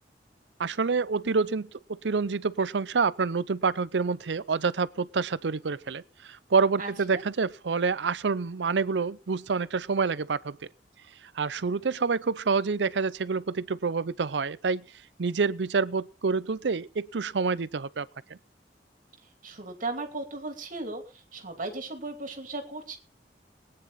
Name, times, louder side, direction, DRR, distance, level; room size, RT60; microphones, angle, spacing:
voice 1, 0.6-10.6 11.4-14.8 15.2-18.4, right 4 dB, 90° right, 0.6 m, -27 dB
voice 2, 6.8-7.2 19.4-23.0, right 2 dB, 50° right, 2.8 m, -36 dB
20.0 x 9.7 x 4.1 m
head